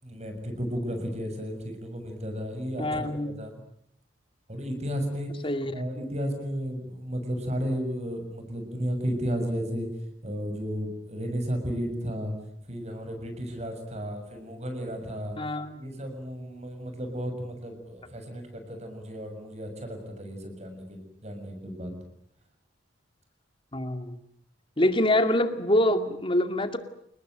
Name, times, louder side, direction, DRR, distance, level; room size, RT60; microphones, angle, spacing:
voice 1, 0.0-3.5 4.5-5.3 5.7-9.9 10.2-12.3 12.7-15.4 15.8-21.9, equal, 35° right, 6 dB, 6.8 m, -33 dB
voice 2, 2.8-3.4 5.4-5.8 15.4-15.8 23.7-24.2 24.8-26.8, left 1 dB, 30° left, 8 dB, 2.3 m, -25 dB
29.5 x 20.0 x 9.2 m, 0.74 s
head